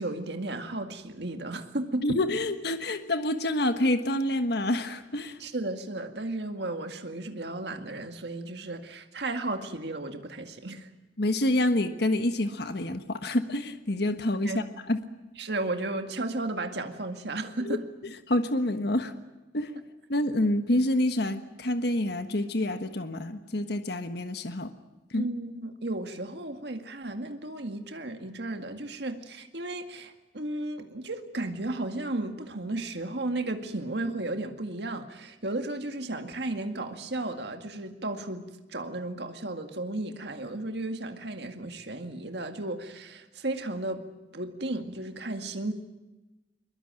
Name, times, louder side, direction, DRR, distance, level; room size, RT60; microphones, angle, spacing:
voice 1, 0.0-2.2 5.4-10.9 14.4-14.7 15.4-17.8 25.2-44.1 44.3-45.7, right 2 dB, 65° right, 6 dB, 2.1 m, -34 dB
voice 2, 2.0-5.4 11.2-15.0 17.6-17.8 18.0-19.1 19.5-19.7 20.1-24.7 25.1-25.3, left 1 dB, 60° left, 8 dB, 1.4 m, -27 dB
22.5 x 22.0 x 9.0 m, 1.1 s
head